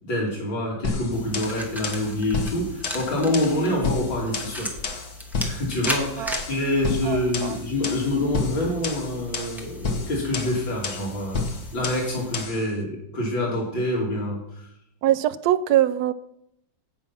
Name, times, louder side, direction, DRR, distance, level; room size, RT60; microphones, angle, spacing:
voice 1, 0.0-4.7 5.4-14.7, left 1 dB, 80° left, -3 dB, 3.5 m, -26 dB
sound 1, 0.8-12.7, left 4 dB, 55° left, 1.6 m, -31 dB
sound 2, 1.1-12.5, left 1 dB, ahead, 1.3 m, -37 dB
voice 2, 7.0-7.6 15.0-16.1, right 12 dB, 70° right, 14 dB, 0.9 m, -22 dB
16.5 x 5.6 x 5.9 m, 0.78 s
omnidirectional pair, 2.1 m